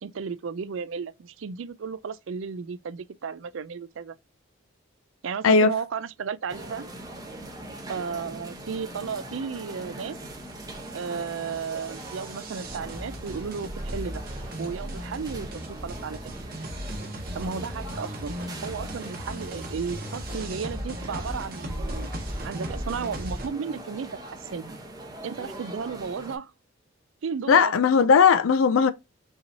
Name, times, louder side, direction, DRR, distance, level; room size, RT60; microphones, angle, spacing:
voice 1, 0.0-4.2 5.2-6.9 7.9-10.2 10.9-14.2 14.6-16.3 17.3-18.4 18.6-22.1 22.4-24.8 25.2-26.5 27.2-27.7, right 6 dB, 70° right, 0.4 m, -34 dB
sound 1, 6.5-26.4, right 1 dB, 15° right, 0.9 m, -42 dB
sound 2, 10.2-23.5, equal, 45° right, 1.3 m, -37 dB
voice 2, 27.5-28.9, left 5 dB, 75° left, 0.4 m, -18 dB
5.6 x 2.9 x 2.7 m
head